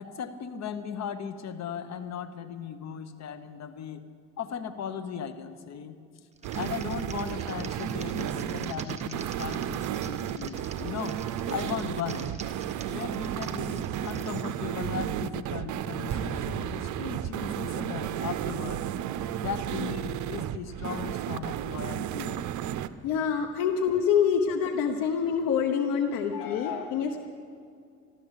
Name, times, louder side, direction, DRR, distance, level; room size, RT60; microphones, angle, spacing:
voice 1, 0.0-4.0 4.4-6.0 6.5-11.2 11.5-12.3 12.9-18.8 19.4-22.4, left 7 dB, 55° left, 9 dB, 1.2 m, -37 dB
Typing, 6.3-14.5, right 4 dB, 20° right, 1.6 m, -47 dB
sound 1, 6.4-22.9, right 11 dB, 65° right, 0.7 m, -33 dB
sound 2, 16.1-17.7, right 5 dB, 45° right, 2.1 m, -39 dB
voice 2, 23.0-27.2, left 7 dB, 80° left, 3 dB, 1.0 m, -26 dB
13.5 x 12.5 x 8.1 m, 2.3 s
cardioid pair, 95°, 32 cm